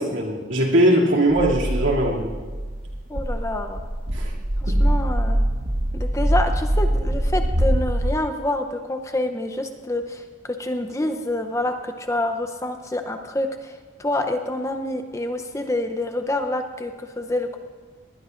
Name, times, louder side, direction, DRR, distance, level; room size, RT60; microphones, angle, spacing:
voice 1, 0.0-2.3 4.1-4.3 4.7-4.8, right 1 dB, 75° right, -2 dB, 2.7 m, -20 dB
sound 1, 1.3-8.1, right 1 dB, 50° right, 1.7 m, -23 dB
voice 2, 3.1-3.8 4.6-5.4 5.9-17.6, left 1 dB, 15° left, 6 dB, 0.7 m, -27 dB
20.0 x 20.0 x 2.6 m, 1.4 s
head